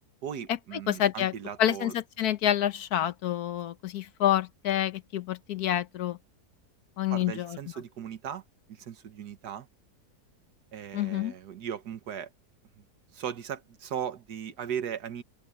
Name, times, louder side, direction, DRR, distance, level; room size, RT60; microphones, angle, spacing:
voice 1, 0.2-1.9 7.1-8.4 8.7-9.7 10.7-12.3 12.8-12.9 13.1-15.2, right 8 dB, 85° right, 1.8 m, -37 dB
voice 2, 0.9-1.3 1.6-6.2 7.0-7.6 10.9-11.3, left 11 dB, 75° left, 1.3 m, -28 dB
open air
omnidirectional pair, 1.7 m